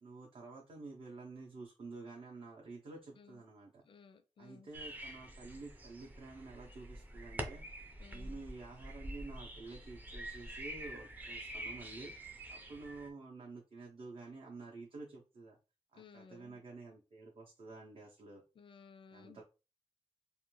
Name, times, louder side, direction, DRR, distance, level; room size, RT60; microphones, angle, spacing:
voice 1, 0.0-3.8 4.4-7.6 8.1-15.6 15.9-18.4 19.1-19.4, right 3 dB, 55° right, 0.6 m, -50 dB
voice 2, 3.9-4.7 8.0-8.4 15.9-16.6 18.6-19.4, left 5 dB, 50° left, 0.4 m, -58 dB
sound 1, 4.7-13.1, right 1 dB, 15° right, 0.4 m, -46 dB
2.4 x 2.2 x 3.0 m
wide cardioid pair, 140°, 11 cm